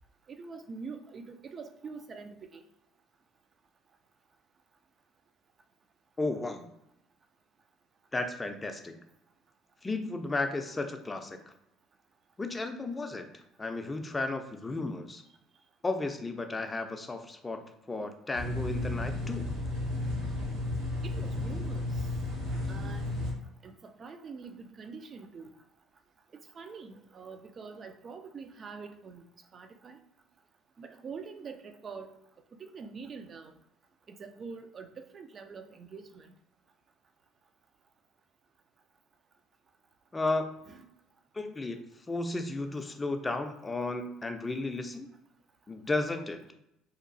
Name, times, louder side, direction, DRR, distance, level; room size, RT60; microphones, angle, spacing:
voice 1, 0.3-2.6 21.0-21.9 22.7-23.1 23.6-25.5 26.6-29.2 29.5-30.0 30.8-32.1 32.6-33.5 34.1-36.3 40.7-40.8, right 5 dB, 40° right, 7 dB, 0.4 m, -45 dB
voice 2, 6.2-6.7 8.1-9.0 9.8-11.5 12.4-15.2 15.8-17.6 17.9-19.5 40.1-40.5 41.3-41.8 42.1-45.1 45.7-46.4, left 2 dB, 20° left, 6 dB, 0.4 m, -34 dB
sound 1, 18.3-23.3, left 2 dB, 75° right, 0.9 m, -33 dB
2.8 x 2.3 x 2.5 m, 0.81 s
hypercardioid pair, 70°, 0 cm